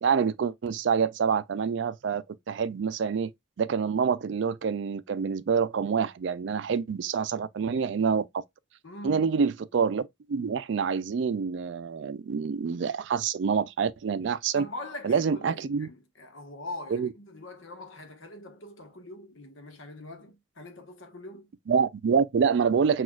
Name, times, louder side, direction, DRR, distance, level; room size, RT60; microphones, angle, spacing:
voice 1, 0.0-3.3 3.6-8.4 9.0-14.7 15.0-15.9 16.9-17.1 21.7-23.0, right 6 dB, 65° right, 0.4 m, -27 dB
voice 2, 8.8-9.4 14.5-21.5, left 2 dB, 80° left, 1.1 m, -43 dB
6.0 x 2.4 x 2.3 m
head